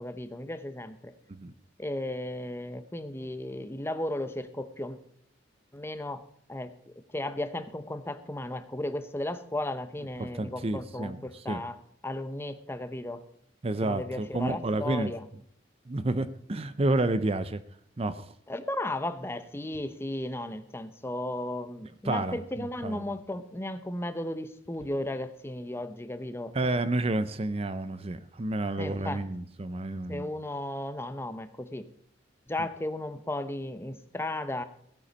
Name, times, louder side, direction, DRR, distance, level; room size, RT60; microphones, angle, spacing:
voice 1, 0.0-1.1 1.8-5.0 5.7-6.2 6.5-11.8 12.0-13.2 13.8-15.2 18.5-26.6 28.8-29.2 30.1-31.9 32.5-34.6, left 1 dB, 15° left, 11 dB, 0.7 m, -35 dB
voice 2, 10.2-11.6 13.6-15.1 15.9-17.6 18.0-18.3 22.0-23.1 26.5-30.3, right 2 dB, 30° right, 14 dB, 0.5 m, -30 dB
16.0 x 8.5 x 5.3 m, 0.66 s
head